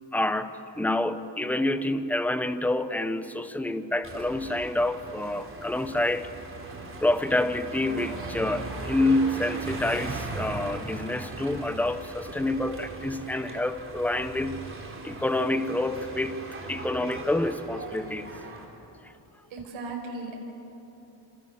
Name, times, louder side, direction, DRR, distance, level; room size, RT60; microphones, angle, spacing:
voice 1, 0.1-6.3 7.0-14.7 15.0-18.3, left 1 dB, 5° left, 10 dB, 0.9 m, -28 dB
sound 1, 4.0-18.6, right 2 dB, 25° right, 3.9 m, -39 dB
voice 2, 19.5-20.3, right 3 dB, 85° right, 0 dB, 5.8 m, -36 dB
27.5 x 27.0 x 7.2 m, 3.0 s
cardioid pair, 155°, 46 cm